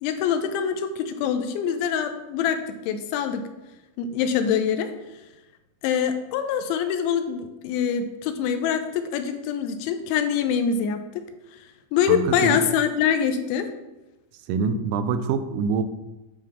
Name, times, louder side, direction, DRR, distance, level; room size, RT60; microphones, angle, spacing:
voice 1, 0.0-3.4 4.0-4.9 5.8-11.3 11.9-13.7, left 7 dB, 80° left, 8 dB, 2.9 m, -24 dB
voice 2, 12.1-12.6 14.5-15.8, right 5 dB, 85° right, 10 dB, 3.0 m, -25 dB
9.5 x 6.2 x 3.6 m, 1.0 s
omnidirectional pair, 5.4 m